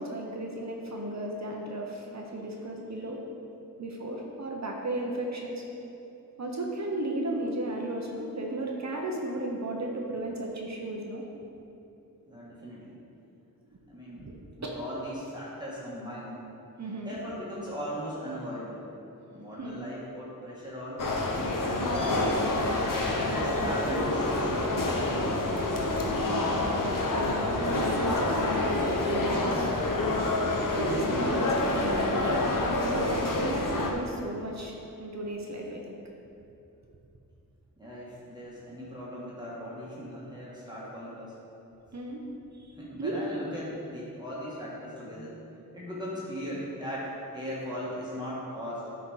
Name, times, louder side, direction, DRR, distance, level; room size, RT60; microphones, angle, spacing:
voice 1, 0.0-3.2 3.8-5.6 6.4-11.2 14.2-14.3 16.8-17.2 19.6-19.8 23.1-23.4 26.3-29.7 30.7-35.9 41.9-42.2 42.6-43.2, right 1 dB, 50° right, 0 dB, 0.9 m, -34 dB
voice 2, 12.3-13.0 13.9-14.3 14.6-16.5 17.0-18.9 19.3-22.2 23.1-25.5 37.8-41.3 42.8-45.4 45.7-48.9, equal, 10° right, -8 dB, 1.5 m, -38 dB
sound 1, 21.0-33.9, left 2 dB, 70° left, 0.8 m, -27 dB
9.9 x 4.1 x 4.8 m, 2.9 s
wide cardioid pair, 105°, 34 cm